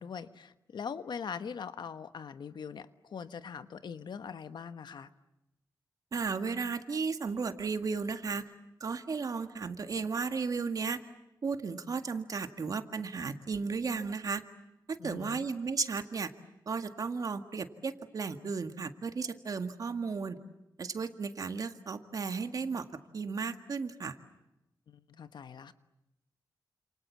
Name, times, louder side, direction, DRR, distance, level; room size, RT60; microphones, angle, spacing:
voice 1, 0.0-5.1 15.0-15.4 24.9-25.7, left 6 dB, 75° left, 1.3 m, -42 dB
voice 2, 6.1-8.5 8.8-11.0 11.4-14.4 14.9-16.3 16.7-20.4 20.8-22.9 23.1-24.2, right 5 dB, 50° right, 1.9 m, -34 dB
30.0 x 27.5 x 7.3 m
wide cardioid pair, 130°, 8 cm